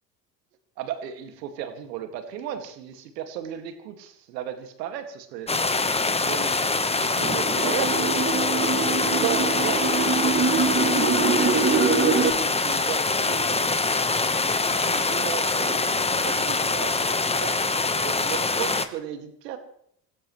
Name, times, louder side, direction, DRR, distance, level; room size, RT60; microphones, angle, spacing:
voice 1, 0.8-5.5 6.1-8.2 8.8-13.7 14.7-17.6 18.0-19.6, right 10 dB, 75° right, 7 dB, 2.2 m, -35 dB
sound 1, 5.5-18.9, left 3 dB, 10° left, 1.1 m, -24 dB
sound 2, 7.2-12.3, right 4 dB, 25° right, 1.9 m, -24 dB
26.0 x 15.5 x 3.2 m, 0.70 s
hypercardioid pair, 70°, 50 cm